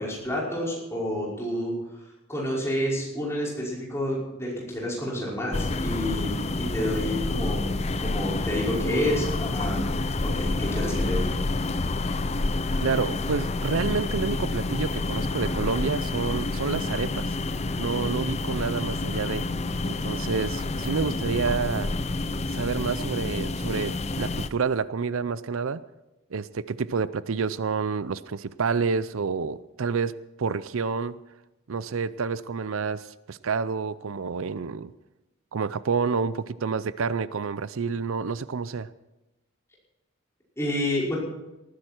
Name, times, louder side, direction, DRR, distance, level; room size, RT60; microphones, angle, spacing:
voice 1, 0.0-1.7 2.3-7.7 8.0-9.9 10.2-11.3 40.6-41.1, left 1 dB, 15° left, -5 dB, 5.5 m, -29 dB
sound 1, 5.5-24.5, left 2 dB, 30° left, 0.6 m, -28 dB
voice 2, 12.8-17.4 17.8-19.5 19.8-21.9 22.5-25.8 26.3-31.2 31.7-34.9 35.5-38.9, right 5 dB, 75° right, 16 dB, 0.5 m, -29 dB
19.0 x 14.5 x 4.5 m, 0.98 s
head